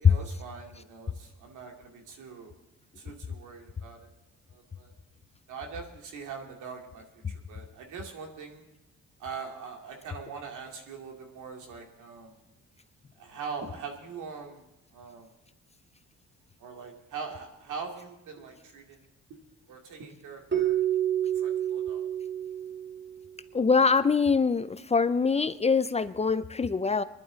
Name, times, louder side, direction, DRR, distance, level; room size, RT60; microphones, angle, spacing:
voice 1, 0.0-2.5 3.0-4.1 4.5-4.9 5.5-8.6 9.2-12.3 13.2-14.7 14.9-15.3 16.6-19.0 19.7-20.8 21.4-22.1, right 5 dB, 85° right, 2 dB, 2.5 m, -42 dB
Keyboard (musical), 20.5-23.3, right 11 dB, 40° right, 2.0 m, -29 dB
voice 2, 23.5-27.0, left 5 dB, 20° left, 13 dB, 0.5 m, -23 dB
22.5 x 11.0 x 4.0 m, 0.91 s
cardioid pair, 90°, 30 cm